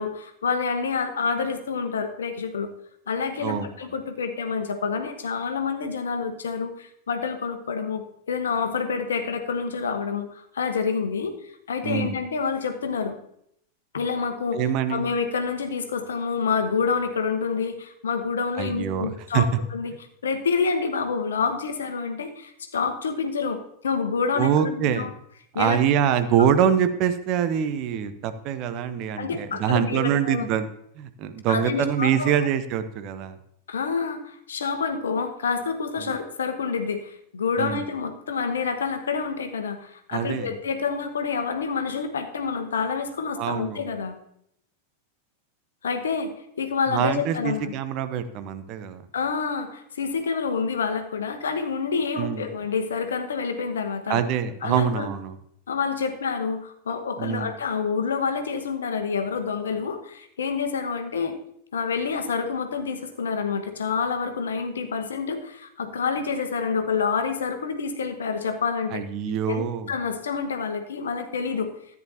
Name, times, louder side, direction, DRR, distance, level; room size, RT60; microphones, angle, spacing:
voice 1, 0.0-2.7 3.1-11.3 11.7-13.2 13.9-14.6 14.9-19.9 20.2-25.1 25.5-25.8 29.2-30.5 31.5-32.3 33.7-44.2 45.8-46.3 46.6-47.7 49.1-54.2 54.6-55.1 55.7-61.4 61.7-69.1 69.5-71.7, left 5 dB, 65° left, 7 dB, 1.1 m, -28 dB
voice 2, 11.8-12.2 14.5-15.1 18.6-19.6 24.3-25.1 25.5-30.7 31.0-33.4 36.0-36.1 37.6-37.8 40.1-40.5 43.3-43.9 46.9-49.0 52.1-52.5 54.1-55.4 57.2-57.5 68.9-69.9, right 8 dB, 40° right, 10 dB, 0.8 m, -25 dB
14.0 x 9.3 x 2.8 m, 0.72 s
figure-of-eight pair, 90°, 0 cm